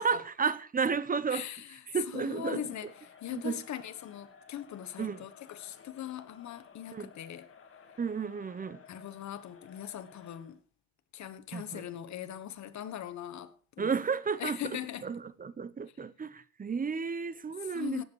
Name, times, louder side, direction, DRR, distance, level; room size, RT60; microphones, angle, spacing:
voice 1, 0.0-2.7 3.3-3.7 5.0-5.3 6.9-7.1 8.0-8.8 11.5-11.8 13.8-18.0, right 5 dB, 30° right, 0.8 m, -33 dB
voice 2, 1.3-1.7 2.1-2.9 3.2-7.5 8.9-10.6 11.1-13.9 14.4-15.1 17.7-18.0, left 10 dB, 70° left, 1.4 m, -40 dB
Crowd, 2.5-10.6, left 6 dB, 45° left, 2.3 m, -56 dB
17.5 x 8.3 x 4.7 m
cardioid pair, 90°, 30 cm